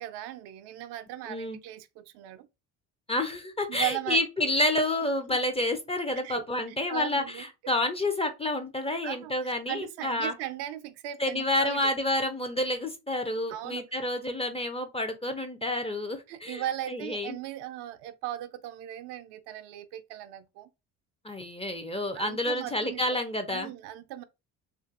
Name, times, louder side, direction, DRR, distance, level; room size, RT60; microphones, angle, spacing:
voice 1, 0.0-2.5 3.7-4.2 6.2-6.4 6.9-7.4 9.0-9.3 9.7-11.9 13.5-13.8 16.3-20.7 22.1-23.2 23.5-24.2, right 13 dB, 65° right, 0.5 m, -37 dB
voice 2, 1.3-1.6 3.1-10.3 11.2-16.6 16.9-17.4 21.2-23.7, left 1 dB, 15° left, 0.4 m, -29 dB
2.5 x 2.5 x 2.4 m
hypercardioid pair, 60°, 44 cm